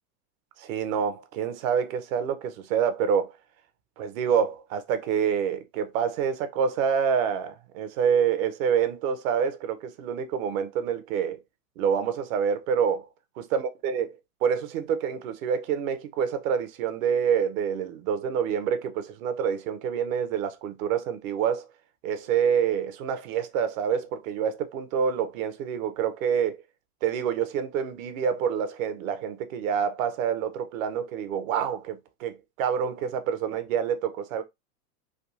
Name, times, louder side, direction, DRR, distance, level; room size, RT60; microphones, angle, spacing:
voice 1, 0.6-3.3 4.0-11.4 11.8-13.1 13.4-14.1 14.4-21.7 22.0-26.6 27.0-34.4, right 7 dB, 55° right, 0.7 m, -27 dB
3.4 x 2.2 x 2.6 m
hypercardioid pair, 115°, 48 cm